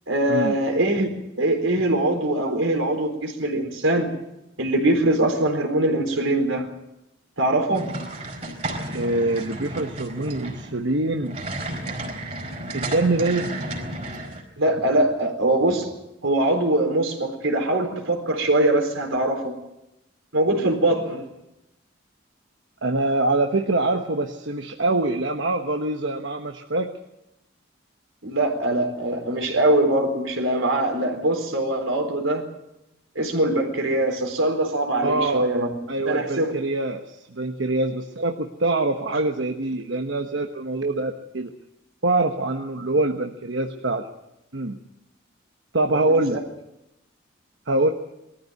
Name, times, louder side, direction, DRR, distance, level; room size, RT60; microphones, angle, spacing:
voice 1, 0.1-1.1 1.4-4.1 4.6-6.7 7.4-7.9 14.6-15.9 16.2-19.6 20.3-21.2 28.2-32.5 33.1-35.7 36.1-36.5 46.0-46.4, right 1 dB, 85° right, 4 dB, 4.2 m, -22 dB
sound 1, 7.7-14.4, right 1 dB, 30° right, 4.4 m, -32 dB
voice 2, 8.9-11.4 12.7-13.5 20.9-21.1 22.8-26.9 35.0-35.5 35.9-41.5 42.0-44.1 44.5-44.8 45.7-46.4 47.7-47.9, right 2 dB, 65° right, 5 dB, 1.1 m, -24 dB
21.5 x 14.0 x 9.3 m, 0.90 s
head